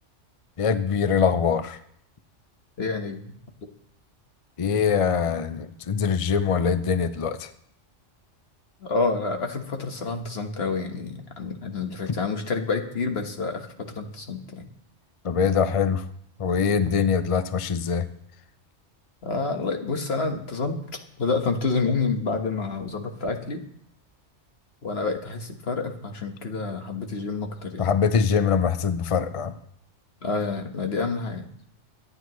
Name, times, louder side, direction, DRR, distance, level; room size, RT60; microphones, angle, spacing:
voice 1, 0.6-1.8 4.6-7.5 15.2-16.0 16.4-18.1 27.8-29.5, left 6 dB, 40° left, 11 dB, 0.5 m, -23 dB
voice 2, 2.8-3.3 3.6-3.7 8.8-14.7 19.2-20.8 21.2-23.6 24.8-27.9 30.2-31.5, left 4 dB, 55° left, 4 dB, 1.6 m, -28 dB
23.5 x 9.9 x 3.1 m, 0.70 s
omnidirectional pair, 1.2 m